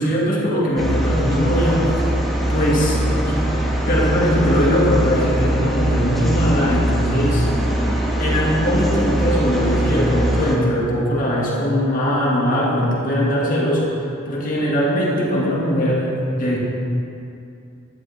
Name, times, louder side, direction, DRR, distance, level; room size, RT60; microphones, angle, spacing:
voice 1, 0.0-1.9 2.5-3.4 3.9-7.5 8.2-16.1 16.4-16.6, equal, 40° left, -4 dB, 2.4 m, -20 dB
sound 1, 0.8-10.6, right 1 dB, ahead, 1.6 m, -21 dB
12.5 x 11.5 x 3.7 m, 2.5 s
head